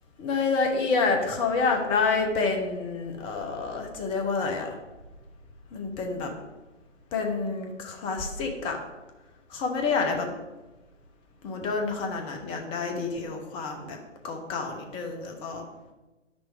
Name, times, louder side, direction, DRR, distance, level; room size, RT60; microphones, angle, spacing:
voice 1, 0.2-4.8 5.7-6.3 7.1-8.8 9.5-10.3 11.4-14.0 14.2-15.6, left 4 dB, 15° left, 3 dB, 0.9 m, -28 dB
10.0 x 6.2 x 4.9 m, 1.1 s
figure-of-eight pair, 135°, 37 cm